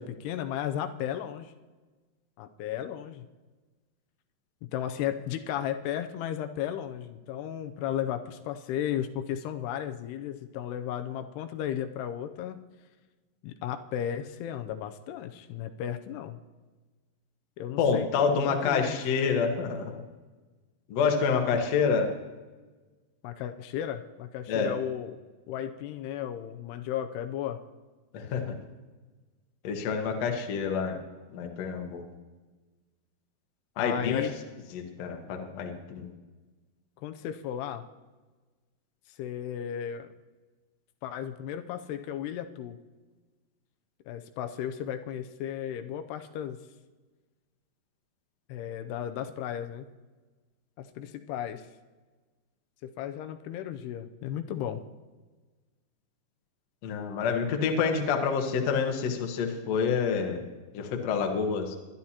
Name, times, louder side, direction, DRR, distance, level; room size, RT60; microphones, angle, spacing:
voice 1, 0.0-1.5 2.4-3.3 4.7-12.7 13.4-16.4 17.6-19.0 23.2-25.2 25.5-27.6 33.8-34.3 37.0-37.8 39.1-40.1 41.0-42.8 44.1-46.6 48.5-49.9 50.8-51.7 52.8-54.8, left 10 dB, 85° left, 8 dB, 2.7 m, -34 dB
voice 2, 17.8-20.0 20.9-22.1 24.5-24.8 28.1-28.6 29.6-31.0 31.3-32.0 33.8-34.3 34.7-36.1 56.8-60.4 60.7-61.7, left 6 dB, 60° left, 3 dB, 1.8 m, -27 dB
22.5 x 11.0 x 2.9 m, 1.3 s
omnidirectional pair, 4.7 m